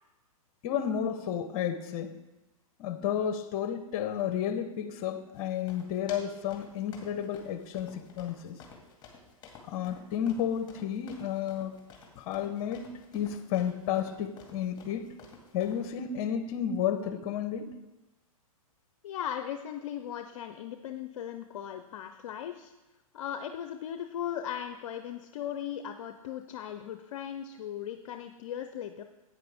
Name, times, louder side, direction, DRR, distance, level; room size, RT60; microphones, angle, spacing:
voice 1, 0.6-2.2 2.8-8.6 9.7-11.8 12.2-15.1 15.5-17.8, left 9 dB, 40° left, 10 dB, 1.0 m, -32 dB
sound 1, 5.3-15.9, left 4 dB, 20° left, 2.2 m, -53 dB
voice 2, 19.0-22.7 23.1-29.0, left 10 dB, 55° left, 7 dB, 0.6 m, -38 dB
10.5 x 8.8 x 3.6 m, 1.0 s
hypercardioid pair, 125°, 19 cm